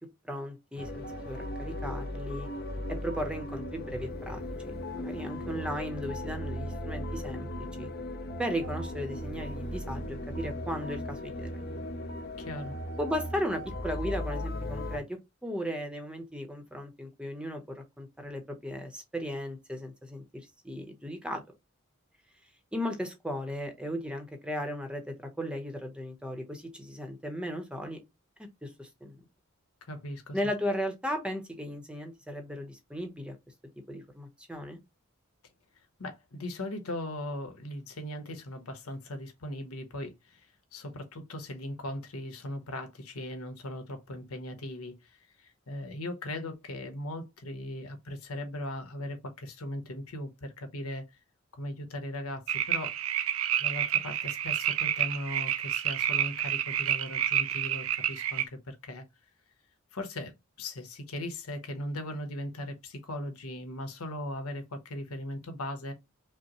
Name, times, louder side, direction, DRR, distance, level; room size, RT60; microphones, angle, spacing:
voice 1, 0.2-2.5 2.9-7.5 7.8-7.9 8.4-11.9 13.0-21.4 22.7-28.0 28.6-29.2 30.3-33.4 33.9-34.8, equal, 5° right, 0.7 m, -36 dB
sound 1, 0.8-15.0, left 1 dB, 45° left, 0.6 m, -37 dB
voice 2, 12.4-12.8 29.9-30.4 36.0-51.1 51.5-53.0 53.6-59.0 59.9-65.9, left 1 dB, 90° left, 1.1 m, -38 dB
sound 2, 52.5-58.5, right 10 dB, 75° right, 0.5 m, -29 dB
5.4 x 2.1 x 2.9 m
head